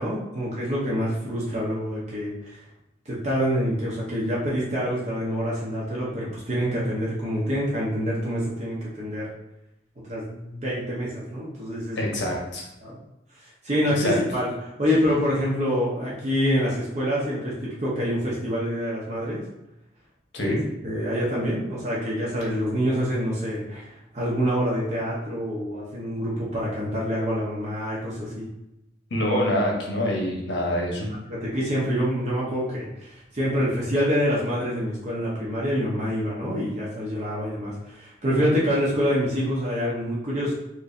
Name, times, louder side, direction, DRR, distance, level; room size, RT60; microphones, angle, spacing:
voice 1, 0.0-2.5 3.1-9.3 10.0-12.0 12.8-13.0 13.4-19.4 20.4-20.5 20.8-28.5 31.1-40.5, equal, 40° right, -6 dB, 0.8 m, -26 dB
voice 2, 12.0-12.6 13.9-14.2 20.3-20.6 29.1-31.1, left 1 dB, 80° left, -1 dB, 1.0 m, -25 dB
4.5 x 2.6 x 2.5 m, 0.89 s
head